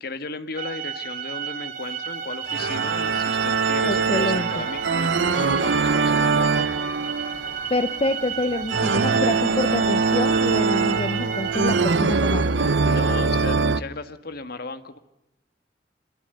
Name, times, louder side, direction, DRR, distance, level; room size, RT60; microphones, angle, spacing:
voice 1, 0.0-6.7 12.8-15.0, left 3 dB, 60° left, 10 dB, 1.6 m, -35 dB
sound 1, 0.5-11.8, right 7 dB, 50° right, 3.8 m, -33 dB
sound 2, 2.5-13.8, right 4 dB, 80° right, 0.9 m, -23 dB
voice 2, 3.8-4.7 7.7-12.5, left 2 dB, 30° left, 11 dB, 0.8 m, -27 dB
26.0 x 21.5 x 6.8 m, 0.88 s
head